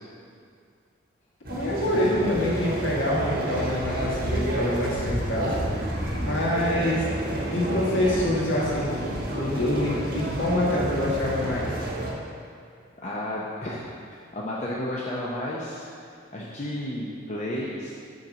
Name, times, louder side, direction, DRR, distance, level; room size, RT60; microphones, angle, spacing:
sound 1, 1.4-12.1, right 1 dB, 45° right, 1.1 m, -30 dB
voice 1, 1.5-5.6 5.9-7.1 7.5-11.8, left 1 dB, 65° left, -5 dB, 1.6 m, -26 dB
voice 2, 13.0-13.9 14.3-17.9, left 1 dB, 35° left, -5 dB, 0.6 m, -33 dB
6.4 x 4.3 x 5.9 m, 2.3 s
head